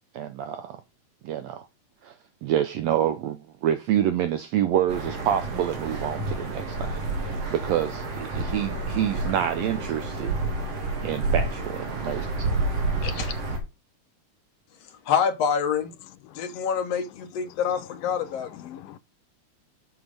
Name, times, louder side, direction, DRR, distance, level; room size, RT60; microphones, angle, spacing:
voice 1, 0.1-0.8 1.2-1.6 2.0-2.1 2.4-10.3 11.0-12.3, right 10 dB, 80° right, 1.5 m, -27 dB
sound 1, 4.9-13.6, right 2 dB, 55° right, 2.6 m, -29 dB
voice 2, 13.0-13.3 15.1-15.9 16.4-18.8, left 7 dB, 65° left, 1.9 m, -27 dB
voice 3, 16.2-16.7 17.4-19.0, left 13 dB, 85° left, 2.3 m, -46 dB
6.8 x 6.1 x 5.2 m
omnidirectional pair, 3.6 m